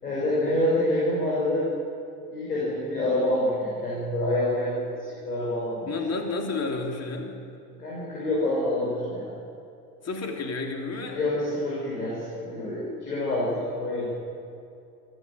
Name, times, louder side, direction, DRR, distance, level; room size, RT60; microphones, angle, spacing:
voice 1, 0.0-1.7 2.3-5.9 7.7-9.3 11.1-14.1, left 1 dB, 90° left, -6 dB, 5.9 m, -27 dB
voice 2, 5.9-7.3 10.0-11.2, left 3 dB, 35° left, 2 dB, 3.3 m, -31 dB
25.0 x 16.0 x 7.6 m, 2.6 s
hypercardioid pair, 75°, 45 cm